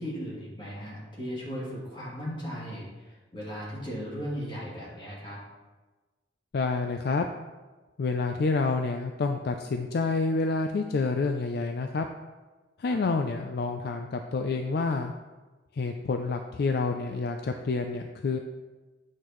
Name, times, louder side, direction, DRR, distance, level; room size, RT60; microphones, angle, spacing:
voice 1, 0.0-5.4 12.9-13.0, equal, 25° left, -7 dB, 2.7 m, -37 dB
voice 2, 6.5-7.3 8.0-12.1 12.8-15.1 15.7-18.4, left 3 dB, 55° left, 5 dB, 0.4 m, -28 dB
8.7 x 6.4 x 3.1 m, 1.2 s
head